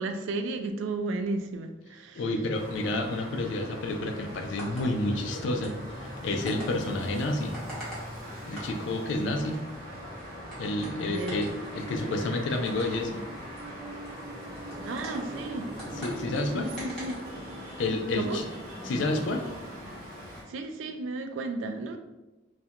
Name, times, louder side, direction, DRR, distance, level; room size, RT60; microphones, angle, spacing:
voice 1, 0.0-2.2 11.1-11.4 14.8-15.7 16.5-17.2 18.1-18.4 20.5-22.0, right 2 dB, 85° right, 6 dB, 0.3 m, -33 dB
voice 2, 2.1-7.6 8.4-9.6 10.6-13.2 16.0-16.7 17.8-18.5 18.8-19.5, left 2 dB, 75° left, 4 dB, 0.3 m, -30 dB
sound 1, 2.5-20.4, equal, 45° right, 0.7 m, -41 dB
sound 2, 4.3-17.8, right 1 dB, 5° left, 0.8 m, -47 dB
2.4 x 2.1 x 2.8 m, 1.0 s
head